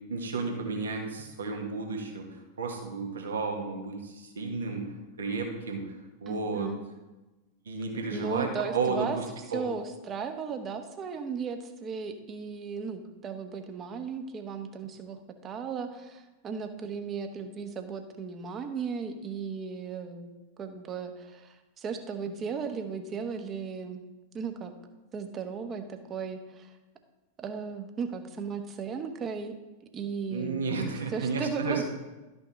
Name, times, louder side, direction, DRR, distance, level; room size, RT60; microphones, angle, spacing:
voice 1, 0.1-4.9 5.2-5.9 6.2-6.7 7.6-9.2 9.5-9.6 30.3-31.8, right 4 dB, 65° right, 2 dB, 1.5 m, -32 dB
voice 2, 6.3-6.8 8.1-9.2 9.5-20.3 20.6-24.0 24.3-24.7 25.1-26.7 27.4-29.6 29.9-30.7 31.1-31.8, right 6 dB, 25° right, 6 dB, 1.0 m, -36 dB
12.0 x 5.7 x 4.1 m, 1.1 s
figure-of-eight pair, 90°, 0 cm